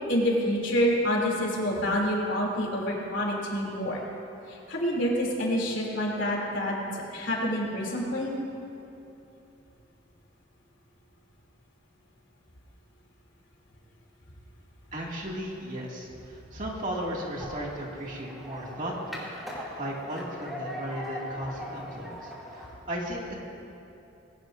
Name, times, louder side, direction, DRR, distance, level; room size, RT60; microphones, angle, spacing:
voice 1, 0.1-4.0 4.5-8.4, equal, 75° left, -3 dB, 3.0 m, -27 dB
voice 2, 14.9-19.3 19.7-23.4, equal, 40° right, -3 dB, 2.3 m, -35 dB
sound 1, 16.8-22.7, equal, ahead, 2.6 m, -41 dB
20.0 x 17.5 x 2.6 m, 2.8 s
head